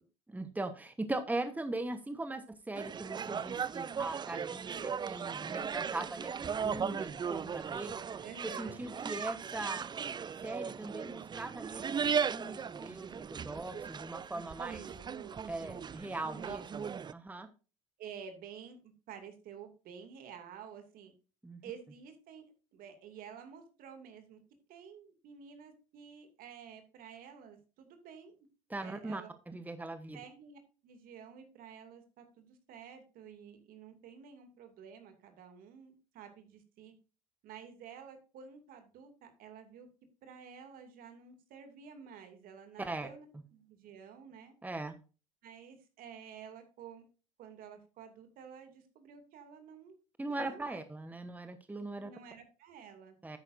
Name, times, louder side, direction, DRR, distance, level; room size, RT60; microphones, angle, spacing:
voice 1, 0.3-8.2 8.6-9.9 10.4-12.0 12.3-14.9 15.5-17.5 21.4-21.6 28.7-30.2 42.8-43.1 44.6-45.0 50.2-52.1 53.2-53.4, right 2 dB, 10° right, 10 dB, 1.1 m, -40 dB
sound 1, 2.7-17.1, right 6 dB, 25° right, 0.5 m, -37 dB
voice 2, 8.2-8.9 14.7-15.8 16.3-16.6 18.0-21.1 21.6-22.4 22.7-24.4 24.7-28.4 28.7-29.4 30.1-36.9 37.4-39.9 40.2-43.3 43.5-44.5 45.4-47.0 47.4-50.0 50.3-50.8 52.0-53.1, right 7 dB, 60° right, 7 dB, 2.6 m, -51 dB
10.5 x 8.9 x 2.6 m, 0.34 s
hypercardioid pair, 70°, 17 cm